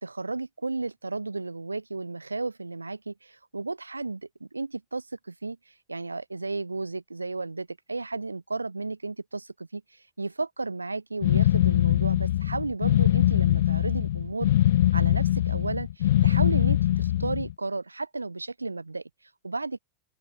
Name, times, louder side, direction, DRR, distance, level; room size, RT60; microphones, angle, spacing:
voice 1, 0.0-14.5 14.9-19.0 19.4-19.8, right 3 dB, 80° right, 1.3 m, -33 dB
sound 1, 11.2-17.5, left 13 dB, 60° left, 0.6 m, -22 dB
open air
figure-of-eight pair, 90°, 0 cm